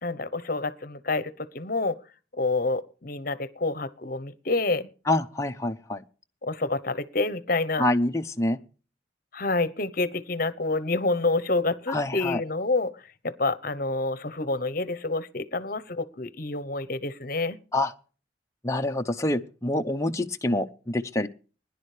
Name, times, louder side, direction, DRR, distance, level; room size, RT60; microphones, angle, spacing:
voice 1, 0.0-2.0 2.3-4.9 6.4-7.9 9.3-12.9 13.2-17.6, left 3 dB, 45° left, 1.0 m, -28 dB
voice 2, 5.1-6.0 7.8-8.6 11.9-12.4 17.7-17.9 18.6-21.3, left 1 dB, 15° left, 0.8 m, -26 dB
21.0 x 11.0 x 3.3 m
head